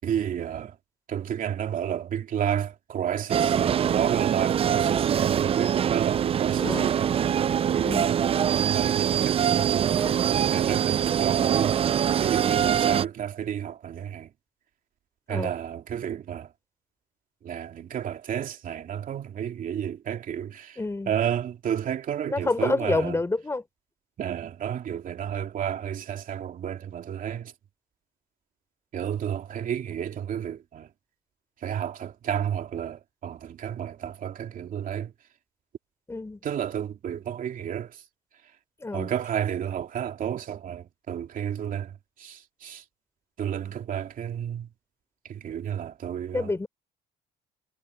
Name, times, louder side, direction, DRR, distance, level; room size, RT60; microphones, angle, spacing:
voice 1, 0.0-0.8 1.1-7.4 7.7-14.3 15.3-16.5 17.4-20.8 21.1-23.2 24.2-27.5 28.9-30.9 31.6-35.1 36.4-38.0 38.9-42.8 43.4-44.7 45.2-46.7, right 9 dB, 55° right, 2.8 m, -31 dB
sound 1, 3.3-13.0, right 9 dB, 35° right, 0.4 m, -24 dB
voice 2, 6.6-6.9 7.8-8.1 10.0-10.2 15.3-15.5 20.8-21.1 22.3-23.6 36.1-36.4 38.8-39.1 46.3-46.7, left 3 dB, 15° left, 4.8 m, -28 dB
cardioid pair, 110°, 17 cm